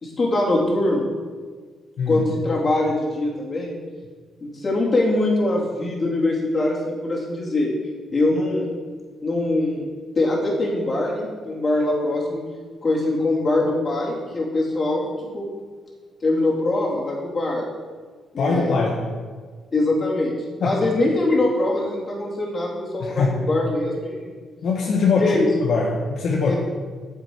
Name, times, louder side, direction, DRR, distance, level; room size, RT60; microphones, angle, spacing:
voice 1, 0.0-1.1 2.1-3.7 4.4-7.7 8.1-8.7 9.2-9.9 10.2-12.4 12.8-15.1 15.3-15.4 16.2-17.7 18.3-18.8 19.7-20.3 20.6-24.4 25.2-25.5 26.4-26.5, left 2 dB, 40° left, -4 dB, 2.9 m, -22 dB
voice 2, 18.4-19.0 20.6-20.8 23.0-23.4 24.6-26.5, left 4 dB, 75° left, -1 dB, 1.1 m, -22 dB
8.4 x 7.5 x 4.8 m, 1.5 s
cardioid pair, 80°, 0 cm